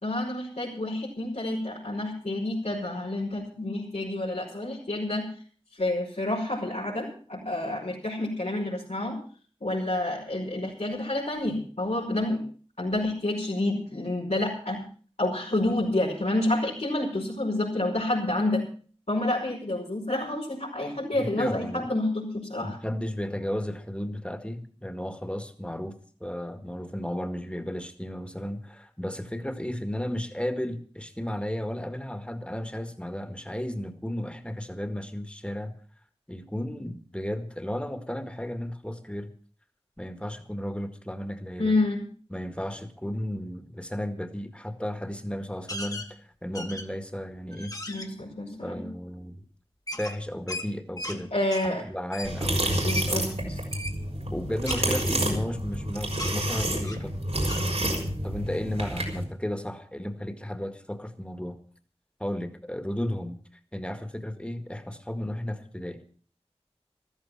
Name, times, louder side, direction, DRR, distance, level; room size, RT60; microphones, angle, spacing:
voice 1, 0.0-5.3 5.7-9.2 9.6-12.4 12.8-14.8 15.2-18.6 19.1-22.8 41.6-42.0 47.9-48.9 51.3-51.8 52.8-53.6, left 1 dB, 90° left, -7 dB, 5.2 m, -29 dB
voice 2, 21.1-21.9 22.6-35.7 36.3-39.3 40.0-41.7 42.3-47.7 48.6-49.4 50.0-51.3 51.6-53.2 54.3-57.2 58.2-61.6 62.2-63.4 63.7-66.0, equal, 10° left, 8 dB, 1.9 m, -34 dB
sound 1, 45.7-46.1 46.5-47.0 47.5-48.1 49.9-51.2 51.5-51.7 52.1-52.3 52.9-53.1 53.7-54.0 54.7-55.8 56.1-56.3 56.8-57.1 57.5-57.6, left 1 dB, 35° left, 1.7 m, -36 dB
sound 2, 52.2-59.2, right 1 dB, 85° right, 4.7 m, -29 dB
14.5 x 13.5 x 5.9 m, 0.43 s
wide cardioid pair, 50°, 11 cm